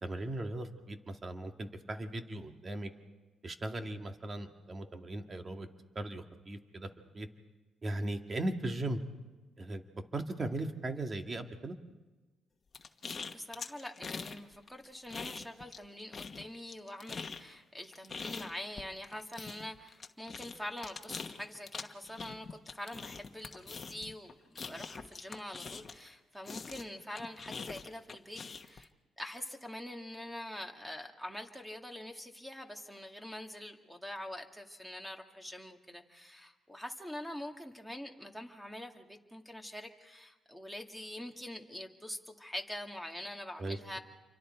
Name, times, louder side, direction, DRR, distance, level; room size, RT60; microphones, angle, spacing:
voice 1, 0.0-2.9 3.4-5.7 6.0-6.9 7.1-7.3 7.8-9.0 9.6-9.8 10.1-11.8 43.6-44.0, right 2 dB, 35° right, 5 dB, 2.0 m, -38 dB
sound 1, 12.7-14.4 14.7-15.9 16.1-26.1 26.5-28.8, left 5 dB, 40° left, 1.3 m, -44 dB
voice 2, 13.2-28.9 29.2-44.0, left 1 dB, ahead, 4 dB, 2.2 m, -45 dB
28.5 x 24.5 x 4.5 m, 1.2 s
cardioid pair, 90°, 0 cm